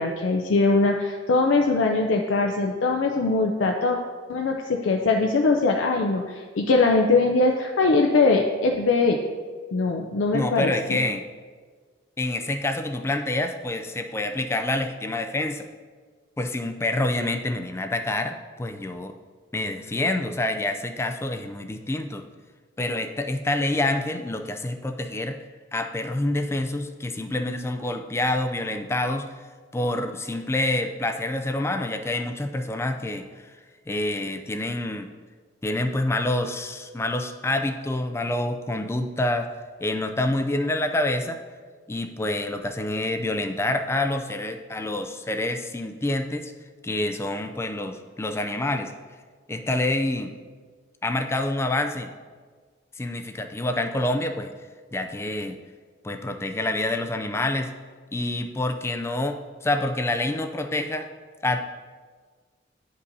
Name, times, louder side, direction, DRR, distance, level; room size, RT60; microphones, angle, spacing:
voice 1, 0.0-4.0 4.3-9.2 9.7-11.0, left 3 dB, 85° left, 2 dB, 0.5 m, -21 dB
voice 2, 10.3-11.2 12.2-15.7 16.4-19.1 19.5-22.2 22.8-25.4 25.7-29.3 29.7-33.5 33.9-35.1 35.6-39.5 39.8-41.4 41.9-46.5 46.8-48.9 49.5-50.3 51.0-52.1 53.0-54.5 54.9-55.6 56.0-57.7 58.1-61.1 61.4-61.6, left 2 dB, 15° left, 6 dB, 0.3 m, -27 dB
9.7 x 5.3 x 2.7 m, 1.5 s
head